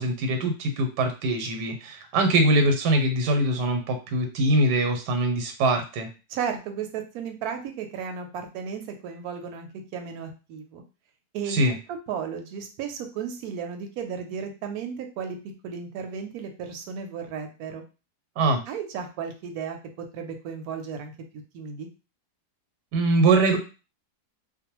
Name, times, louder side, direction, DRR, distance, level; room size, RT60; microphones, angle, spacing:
voice 1, 0.0-6.1 11.5-11.7 18.4-18.6 22.9-23.6, right 2 dB, 90° right, 5 dB, 1.3 m, -23 dB
voice 2, 6.3-10.8 11.3-11.6 11.9-15.4 15.6-17.8 18.7-19.8 20.1-21.1 21.5-21.9, right 7 dB, 70° right, 5 dB, 1.0 m, -34 dB
2.6 x 2.2 x 2.9 m, 0.32 s
omnidirectional pair, 1.8 m